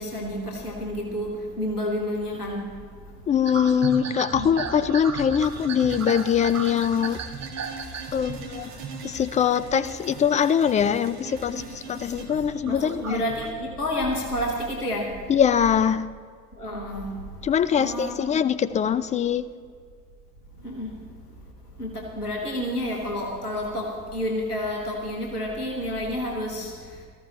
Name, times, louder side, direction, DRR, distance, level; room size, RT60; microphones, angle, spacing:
voice 1, 0.0-2.8 4.3-4.5 8.6-8.8 11.6-12.2 12.6-15.4 16.6-17.3 17.8-18.3 20.6-21.0 21.8-27.1, left 1 dB, 90° left, 1.1 m, -30 dB
voice 2, 3.3-7.2 8.1-8.7 9.0-13.2 15.3-16.1 17.4-19.5, left 8 dB, 20° left, 0.3 m, -23 dB
sound 1, 3.5-10.3 10.6-11.6 12.0-13.5, right 5 dB, 35° right, 1.3 m, -36 dB
sound 2, 5.4-12.3, right 4 dB, 55° right, 2.0 m, -42 dB
18.0 x 14.0 x 2.9 m
figure-of-eight pair, 50°, 44 cm